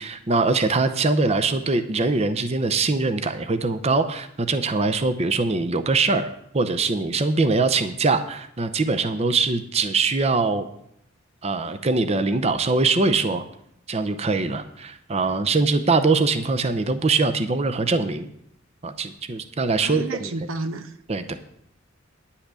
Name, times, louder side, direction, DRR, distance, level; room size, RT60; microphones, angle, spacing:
voice 1, 0.0-6.3 6.5-10.7 11.4-13.4 13.9-18.3 18.8-20.3 21.1-21.3, right 3 dB, 30° right, 9 dB, 0.6 m, -22 dB
voice 2, 19.8-20.9, right 2 dB, 85° right, 10 dB, 0.8 m, -31 dB
10.0 x 5.7 x 8.2 m, 0.72 s
head